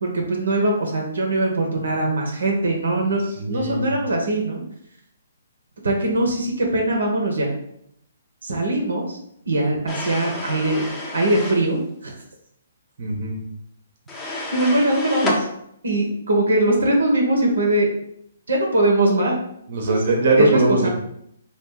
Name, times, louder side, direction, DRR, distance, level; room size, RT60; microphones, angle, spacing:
voice 1, 0.0-3.2 3.5-4.6 5.8-7.5 8.4-9.2 9.5-10.9 11.1-12.1 14.5-15.5 15.8-17.9 18.5-19.3 20.4-20.9, right 1 dB, 80° right, 1 dB, 0.8 m, -21 dB
voice 2, 3.4-3.9 13.0-13.4 19.7-20.9, right 2 dB, 55° right, 1 dB, 0.9 m, -21 dB
wooden Drawer open and close, 9.9-11.7 14.1-15.4, left 2 dB, 15° left, 0.6 m, -29 dB
3.0 x 2.5 x 3.7 m, 0.73 s
hypercardioid pair, 135°, 0 cm